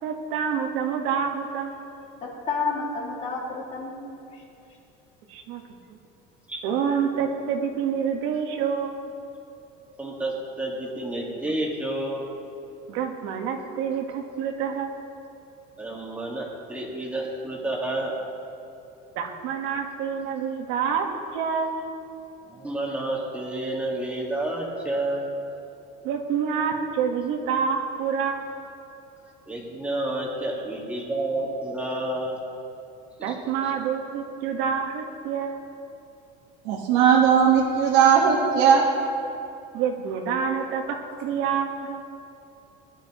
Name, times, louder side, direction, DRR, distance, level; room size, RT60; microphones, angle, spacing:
voice 1, 0.0-1.8 5.3-5.6 6.6-9.0 12.9-15.0 19.1-21.1 21.3-21.8 26.0-28.4 33.2-35.6 39.7-42.0, right 7 dB, 70° right, 3 dB, 1.5 m, -27 dB
voice 2, 2.2-4.4, left 4 dB, 30° left, -2 dB, 2.3 m, -31 dB
voice 3, 10.0-12.3 15.8-18.1 22.5-25.3 29.5-32.4 33.2-33.4, right 1 dB, 5° right, -4 dB, 1.8 m, -30 dB
voice 4, 36.6-38.8, right 7 dB, 85° right, -3 dB, 1.5 m, -18 dB
20.0 x 11.5 x 3.1 m, 2.7 s
cardioid pair, 170°, 20 cm